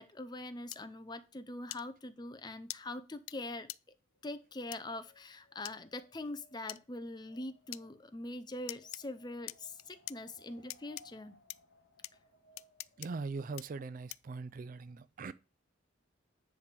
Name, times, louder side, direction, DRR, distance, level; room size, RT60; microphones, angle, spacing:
voice 1, 0.0-3.7 4.2-11.4, left 2 dB, 20° left, 0.5 m, -43 dB
sound 1, 0.7-0.8 1.7-1.8 2.7-2.8 3.3-3.4 3.7-3.8 4.7-4.8 5.6-5.8 6.7-6.8 7.7-7.8 8.7-9.0 9.5-10.2 10.7-11.0 11.5-11.6 12.0-12.1 12.6-13.1 13.6-13.7 14.1-14.3, left 18 dB, 80° left, 0.3 m, -43 dB
Wind, 4.1-13.4, left 2 dB, 60° left, 1.5 m, -65 dB
voice 2, 13.0-15.3, right 4 dB, 40° right, 0.3 m, -41 dB
9.9 x 3.3 x 6.7 m
head